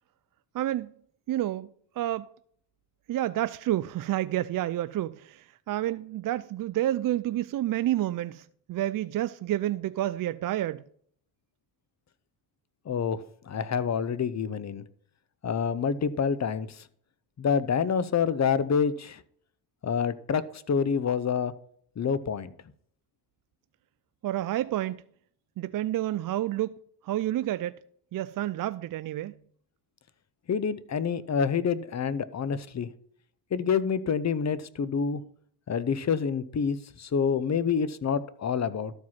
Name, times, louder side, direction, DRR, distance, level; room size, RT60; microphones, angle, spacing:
voice 1, 0.5-0.9 1.3-1.7 2.0-2.3 3.1-10.8 24.2-25.0 25.6-26.7 27.0-27.8 28.1-29.4, right 13 dB, 50° right, 0.5 m, -29 dB
voice 2, 12.9-13.2 13.5-14.8 15.4-16.7 17.4-19.2 19.8-20.4 20.7-21.5 22.0-22.5 30.5-32.9 33.5-35.2 35.7-38.9, left 6 dB, 40° left, 0.8 m, -27 dB
12.5 x 4.8 x 5.8 m
supercardioid pair, 65°, 43 cm